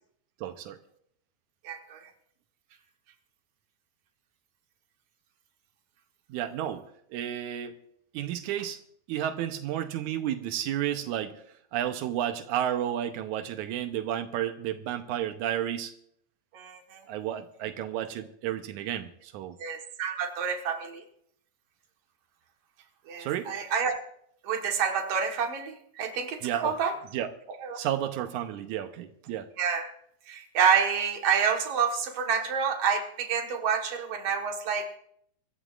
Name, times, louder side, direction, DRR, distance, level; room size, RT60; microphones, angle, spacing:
voice 1, 0.4-0.8 6.3-7.8 8.1-8.8 9.1-11.4 11.7-15.9 17.1-19.6 23.2-23.5 26.4-26.7 27.1-27.3 27.8-29.5, right 11 dB, 90° right, 8 dB, 2.2 m, -32 dB
voice 2, 1.6-2.0 16.5-17.0 19.6-21.0 23.1-23.9 24.4-26.9 27.6-27.8 29.6-29.9 30.3-34.9, right 6 dB, 60° right, 3 dB, 2.4 m, -28 dB
25.0 x 13.0 x 2.5 m, 0.68 s
omnidirectional pair, 3.4 m